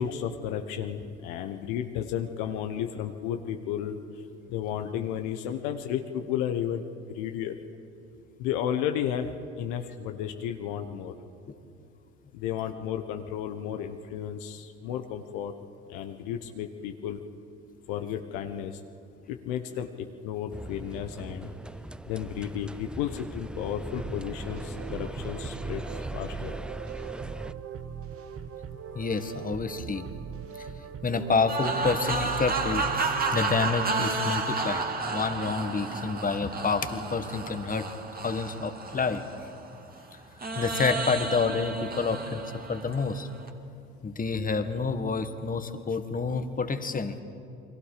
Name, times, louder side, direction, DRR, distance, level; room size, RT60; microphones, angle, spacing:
voice 1, 0.0-4.0 4.5-6.8 7.1-7.6 8.4-9.3 9.6-11.1 12.3-15.5 15.9-17.2 17.9-18.8 19.3-21.5 22.1-25.8 26.1-26.5, left 9 dB, 70° left, 6 dB, 1.3 m, -33 dB
sound 1, 20.5-27.5, right 1 dB, 5° right, 0.4 m, -39 dB
sound 2, 24.0-34.1, right 8 dB, 45° right, 1.4 m, -40 dB
voice 2, 28.9-30.1 30.6-30.7 31.0-37.9 38.2-39.2 40.5-42.4 42.7-43.3 44.0-47.1, left 4 dB, 25° left, 9 dB, 1.8 m, -28 dB
sound 3, 31.5-39.8 40.4-43.5, right 3 dB, 25° right, 2.3 m, -32 dB
29.0 x 22.0 x 5.1 m, 2.6 s
hypercardioid pair, 60°, 32 cm